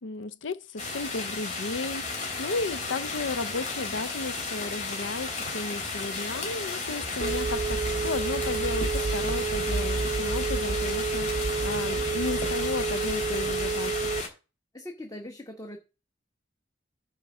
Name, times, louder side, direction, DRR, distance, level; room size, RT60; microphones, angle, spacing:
voice 1, 0.0-14.1, left 3 dB, 85° left, 0.6 m, -34 dB
sound 1, 0.8-14.3, left 3 dB, 40° left, 3.1 m, -34 dB
Telephone, 7.2-14.2, right 4 dB, 35° right, 0.4 m, -29 dB
voice 2, 14.7-15.8, left 1 dB, 20° left, 1.1 m, -40 dB
9.7 x 3.9 x 7.0 m
head